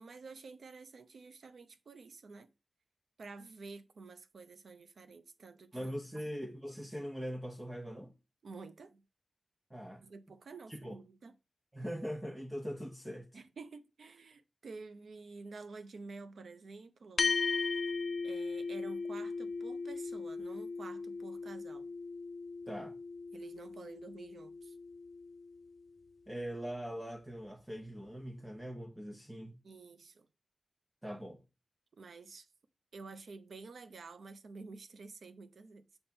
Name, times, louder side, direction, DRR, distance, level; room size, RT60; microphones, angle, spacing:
voice 1, 0.0-2.5 3.2-5.9 8.4-9.0 10.0-11.3 13.3-17.3 18.2-21.9 23.3-24.8 29.6-30.3 32.0-32.5 32.9-35.8, right 4 dB, 85° right, 0.6 m, -50 dB
voice 2, 5.7-8.1 9.7-10.0 10.7-11.0 11.7-13.3 22.7-22.9 26.3-29.6 31.0-31.4, equal, 15° right, 0.8 m, -41 dB
sound 1, 17.2-25.8, left 4 dB, 70° left, 0.3 m, -37 dB
6.8 x 3.5 x 4.3 m
wide cardioid pair, 100°, 0 cm